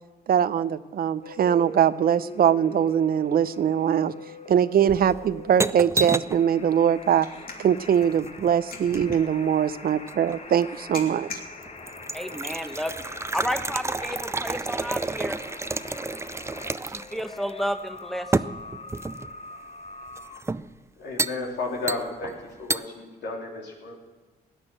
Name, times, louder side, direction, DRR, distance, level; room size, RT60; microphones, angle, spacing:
voice 1, 0.3-4.1 4.5-7.3 7.6-11.3, right 9 dB, 60° right, 16 dB, 0.6 m, -22 dB
sound 1, 1.2-20.4, left 3 dB, 40° left, 1.5 m, -43 dB
sound 2, 4.9-6.4 7.9-9.3 10.1-10.7 11.2-11.3 11.6-17.2 17.5-17.6 18.3-19.3 20.2-20.7 21.2-21.4 21.9-22.3 22.7-22.8, right 3 dB, 15° right, 0.4 m, -30 dB
sound 3, 6.7-16.8, left 4 dB, 60° left, 2.6 m, -47 dB
voice 2, 12.1-13.0 13.3-15.4 16.9-18.4, equal, ahead, 9 dB, 1.3 m, -31 dB
voice 3, 21.0-22.3 22.6-23.9, left 3 dB, 85° left, -1 dB, 3.4 m, -32 dB
16.5 x 9.9 x 7.6 m, 1.3 s
cardioid pair, 75°, 17 cm